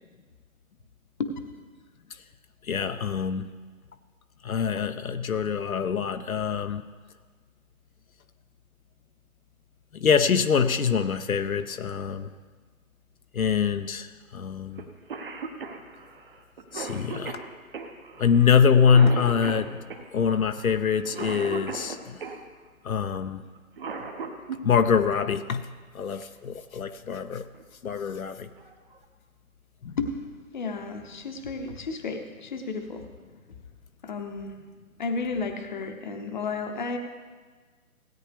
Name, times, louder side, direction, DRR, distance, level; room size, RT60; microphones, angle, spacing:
voice 1, 2.7-3.5 4.4-6.8 9.9-12.3 13.3-14.8 16.7-17.4 18.2-19.8 20.1-22.2 22.8-23.4 24.6-25.6 25.9-27.4 27.8-28.5 29.8-29.9, left 6 dB, 70° left, 9 dB, 0.7 m, -24 dB
Cough, 14.8-14.9 15.1-22.4 23.5-24.6 26.2-26.3 27.4-27.6 28.1-28.2 28.6-29.0, right 5 dB, 40° right, 1.1 m, -37 dB
voice 2, 30.5-33.1 34.0-34.5 35.0-37.0, left 4 dB, 35° left, 6 dB, 0.8 m, -32 dB
17.0 x 9.3 x 3.4 m, 1.5 s
figure-of-eight pair, 150°, 43 cm